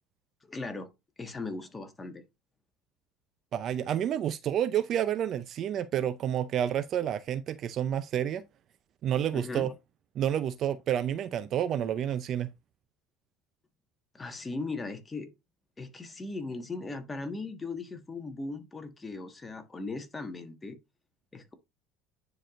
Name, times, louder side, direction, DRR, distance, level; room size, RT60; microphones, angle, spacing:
voice 1, 0.4-0.9 1.2-2.2 9.3-9.7 14.1-15.3 15.8-20.8 21.3-21.5, left 3 dB, 15° left, 1.5 m, -38 dB
voice 2, 3.5-8.4 9.0-9.7 10.2-12.5, right 10 dB, 45° right, 0.5 m, -29 dB
10.0 x 4.8 x 2.5 m
supercardioid pair, 115°, 0 cm